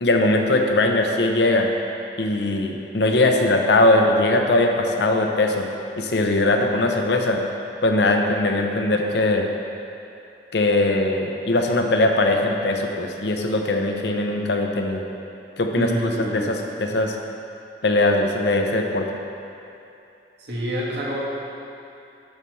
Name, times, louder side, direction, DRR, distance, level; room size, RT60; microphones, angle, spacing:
voice 1, 0.0-1.7 2.2-5.7 6.0-7.4 7.8-9.5 10.5-15.0 15.6-17.2 17.8-19.1, left 2 dB, 70° left, 3 dB, 0.7 m, -20 dB
voice 2, 15.7-16.6 20.5-21.2, equal, 70° right, -5 dB, 1.5 m, -27 dB
12.0 x 5.6 x 3.2 m, 2.7 s
head